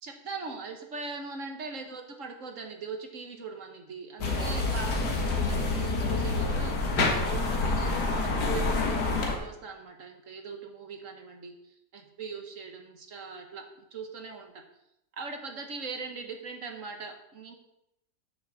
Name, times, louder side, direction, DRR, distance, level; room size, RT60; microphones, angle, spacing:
voice 1, 0.0-11.5 11.9-14.6 15.1-17.6, right 4 dB, 55° right, 4 dB, 1.5 m, -40 dB
sound 1, 4.2-9.4, left 3 dB, 85° left, 2.0 m, -27 dB
7.6 x 6.3 x 6.9 m, 0.82 s
omnidirectional pair, 1.7 m